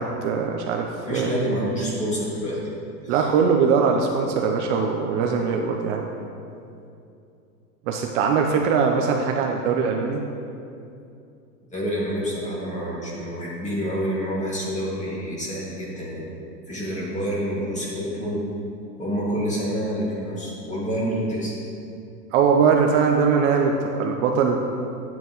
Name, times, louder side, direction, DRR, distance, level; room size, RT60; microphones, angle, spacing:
voice 1, 0.0-1.3 3.1-6.0 7.9-10.2 22.3-24.6, right 6 dB, 45° right, 1 dB, 0.8 m, -21 dB
voice 2, 1.0-2.6 3.0-3.3 11.7-16.2 16.7-18.4 19.0-21.5, equal, 15° left, -5 dB, 2.2 m, -27 dB
9.2 x 8.9 x 3.1 m, 2.6 s
hypercardioid pair, 125°, 49 cm